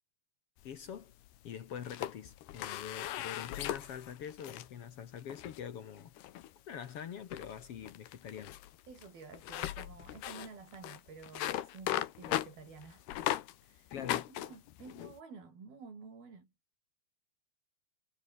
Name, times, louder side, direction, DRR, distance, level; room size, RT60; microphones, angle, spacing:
sound 1, 0.6-1.4 1.8-4.7 5.2-5.6 6.2-6.5 6.8-7.0 7.3-13.6 13.9-15.2, left 13 dB, 85° left, 3.5 m, -38 dB
voice 1, 0.6-1.1 1.4-6.1 6.7-8.5 13.9-14.3, left 8 dB, 65° left, 1.5 m, -44 dB
voice 2, 8.9-13.1 13.6-14.0 14.3-16.5, right 4 dB, 70° right, 8.5 m, -51 dB
omnidirectional pair, 4.5 m